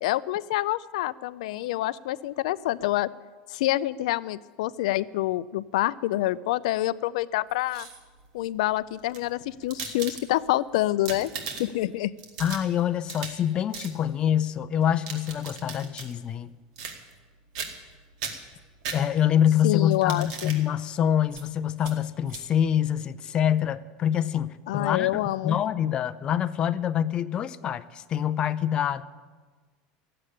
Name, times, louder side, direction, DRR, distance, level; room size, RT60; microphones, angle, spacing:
voice 1, 0.0-3.1 3.5-7.9 8.3-11.3 11.6-12.1 19.6-20.5 24.7-25.6, left 16 dB, 85° left, 0.4 m, -27 dB
sound 1, 7.5-8.2 8.9-10.6 10.9-11.8 12.2-13.5 13.7-14.0 14.8-16.1 16.8-17.3 17.6-17.9 18.2-19.4 19.9-20.6 21.3-21.4 21.8-21.9 22.3-22.4, right 5 dB, 75° right, 2.1 m, -38 dB
voice 2, 12.4-16.5 18.9-29.0, left 10 dB, 25° left, 0.5 m, -25 dB
15.0 x 7.7 x 10.0 m
supercardioid pair, 165°, 4 cm